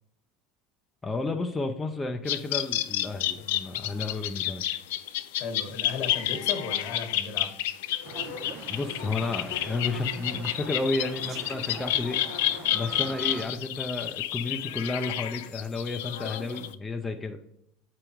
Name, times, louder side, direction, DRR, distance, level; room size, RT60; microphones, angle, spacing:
voice 1, 1.0-4.6 8.7-12.2 12.7-17.4, left 3 dB, 15° left, 3 dB, 0.5 m, -32 dB
sound 1, 2.3-16.8, left 13 dB, 80° left, 0.3 m, -30 dB
voice 2, 5.3-7.5, left 5 dB, 60° left, 5 dB, 1.4 m, -35 dB
sound 2, 8.0-13.5, right 7 dB, 50° right, 0.5 m, -43 dB
7.6 x 5.0 x 3.0 m, 0.76 s
hypercardioid pair, 90°, 0 cm